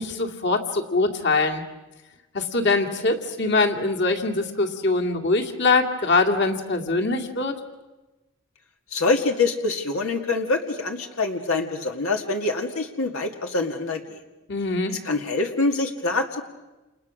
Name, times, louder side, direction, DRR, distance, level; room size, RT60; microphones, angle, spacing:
voice 1, 0.0-1.6 2.3-7.5 14.5-15.0, left 3 dB, 55° left, 3 dB, 2.4 m, -23 dB
voice 2, 8.9-14.2 15.0-16.4, left 3 dB, 85° left, 3 dB, 2.0 m, -25 dB
29.5 x 29.0 x 6.4 m, 1.1 s
head